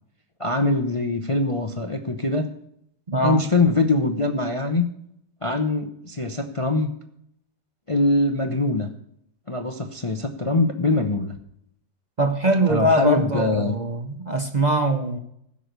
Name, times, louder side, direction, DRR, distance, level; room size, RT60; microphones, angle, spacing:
voice 1, 0.4-2.5 3.2-4.9 5.4-6.9 7.9-8.9 9.5-11.4 12.7-13.8, left 2 dB, 45° left, 7 dB, 0.4 m, -23 dB
voice 2, 3.1-3.5 12.2-15.2, right 1 dB, 40° right, 7 dB, 0.6 m, -22 dB
15.5 x 6.3 x 6.7 m, 0.73 s
omnidirectional pair, 2.0 m